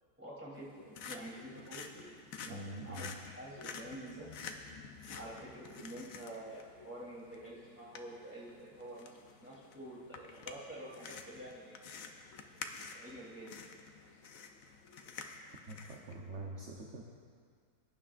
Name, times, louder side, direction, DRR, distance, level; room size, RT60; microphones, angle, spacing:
voice 1, 0.2-2.6 2.8-4.3 5.1-11.8 12.9-13.6, right 1 dB, 10° right, -7 dB, 3.1 m, -48 dB
sound 1, 0.5-16.1, left 5 dB, 65° left, 1.1 m, -50 dB
voice 2, 2.5-3.1 15.7-17.0, right 2 dB, 55° right, -1 dB, 1.1 m, -44 dB
21.0 x 9.9 x 2.5 m, 2.1 s
omnidirectional pair, 1.6 m